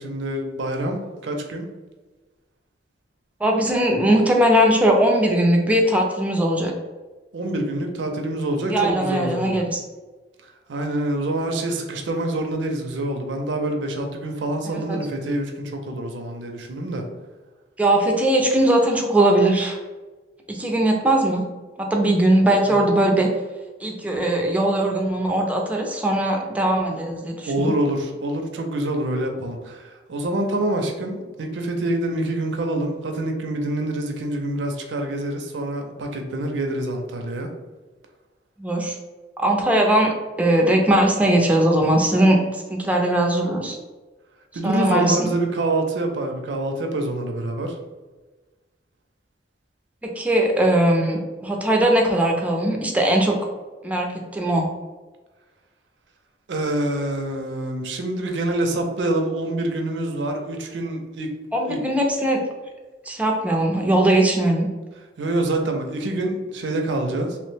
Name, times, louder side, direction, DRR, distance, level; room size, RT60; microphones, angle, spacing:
voice 1, 0.0-1.7 7.3-9.6 10.7-17.0 22.7-22.8 27.5-37.5 44.5-47.8 56.5-61.3 61.7-61.8 65.2-67.4, right 1 dB, 75° right, 3 dB, 0.4 m, -26 dB
voice 2, 3.4-6.7 8.7-9.8 14.7-15.0 17.8-19.8 20.5-21.4 21.8-23.3 23.8-27.7 38.6-39.0 39.4-40.1 40.4-42.4 42.7-43.8 44.6-45.3 50.0-53.4 53.8-54.7 61.5-62.4 63.1-64.7, right 1 dB, 10° right, 1 dB, 0.4 m, -20 dB
2.8 x 2.0 x 3.2 m, 1.3 s
head